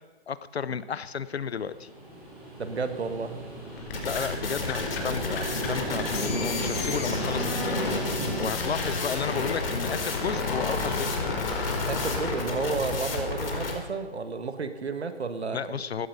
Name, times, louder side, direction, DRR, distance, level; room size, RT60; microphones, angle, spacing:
voice 1, 0.3-1.9 3.8-11.4 15.5-16.1, left 6 dB, 80° left, 16 dB, 0.9 m, -33 dB
sound 1, 1.4-8.4, right 1 dB, 5° right, 0.6 m, -35 dB
voice 2, 2.6-3.4 11.9-15.8, right 4 dB, 85° right, 9 dB, 1.9 m, -32 dB
sound 2, 3.8-13.5, left 4 dB, 15° left, 1.3 m, -34 dB
sound 3, 3.9-13.7, left 3 dB, 60° left, 4.3 m, -32 dB
16.0 x 12.0 x 5.4 m, 1.3 s
hypercardioid pair, 170°, 32 cm